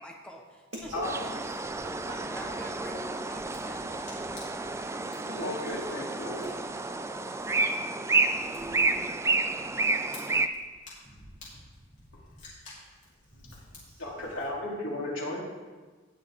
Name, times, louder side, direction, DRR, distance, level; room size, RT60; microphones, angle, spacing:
voice 1, 0.0-0.9 2.3-3.9, equal, 5° left, 1 dB, 1.1 m, -46 dB
Fire, 0.7-14.5, left 2 dB, 40° left, 3.4 m, -52 dB
voice 2, 0.7-2.7 5.2-6.1 8.6-9.0 13.3-14.3, right 1 dB, 80° right, -3 dB, 1.5 m, -45 dB
sound 1, 1.0-10.5, right 3 dB, 15° right, 0.4 m, -30 dB
voice 3, 5.3-6.4 14.0-15.4, left 1 dB, 85° left, -4 dB, 3.2 m, -34 dB
17.5 x 6.4 x 3.7 m, 1.3 s
head